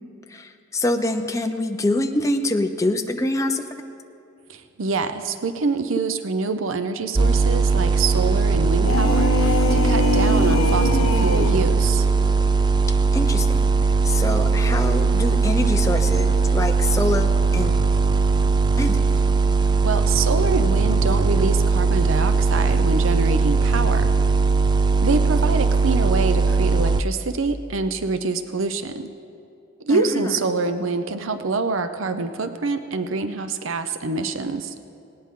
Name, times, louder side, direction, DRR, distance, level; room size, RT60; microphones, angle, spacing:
voice 1, 0.3-3.6 13.1-13.6 14.0-17.8 18.8-19.0 29.9-30.4, left 1 dB, 15° left, 5 dB, 0.7 m, -25 dB
voice 2, 4.5-12.1 19.8-24.1 25.0-29.1 29.8-34.7, right 3 dB, 80° right, 10 dB, 0.7 m, -26 dB
sound 1, 7.2-27.0, right 4 dB, 20° right, 0.3 m, -19 dB
sound 2, 8.7-11.7, left 2 dB, 90° left, 1.0 m, -23 dB
19.0 x 18.0 x 3.8 m, 2.5 s
head